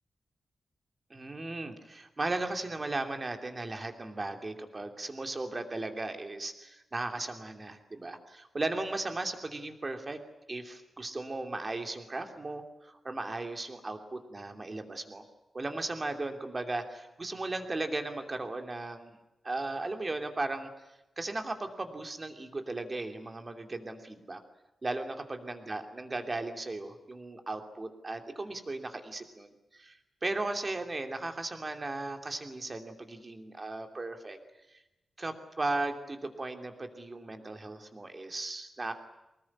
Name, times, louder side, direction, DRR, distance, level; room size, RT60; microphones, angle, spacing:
voice 1, 1.1-10.2 10.5-15.2 15.5-19.2 19.4-20.7 21.2-24.4 24.8-30.0 30.2-34.4 35.2-38.9, right 2 dB, 25° right, 5 dB, 2.9 m, -36 dB
24.5 x 21.0 x 9.8 m, 0.95 s
wide cardioid pair, 160°, 0 cm